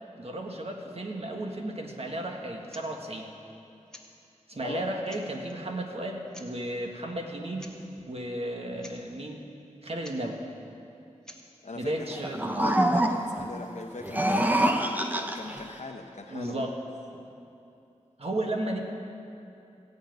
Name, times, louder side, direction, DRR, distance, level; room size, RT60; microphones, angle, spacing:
voice 1, 0.2-3.3 4.5-7.8 8.0-9.4 9.8-10.4 11.7-12.6 16.3-16.8 17.1-17.3 18.2-18.8, right 1 dB, 55° right, 1 dB, 1.5 m, -34 dB
sound 1, 2.7-2.9 3.9-4.1 4.7-4.8 5.1-5.6 6.3-6.5 7.6-7.8 8.0-8.1 8.5-8.6 8.8-9.0 10.0-10.2 11.2-11.4, left 1 dB, 5° left, 1.4 m, -49 dB
voice 2, 4.5-4.9 11.6-12.1 12.6-16.7, left 3 dB, 70° left, 1 dB, 0.8 m, -41 dB
sound 2, 12.1-13.5 14.0-15.6, right 1 dB, 15° right, 0.8 m, -25 dB
15.5 x 5.6 x 9.2 m, 2.7 s
wide cardioid pair, 60°, 13 cm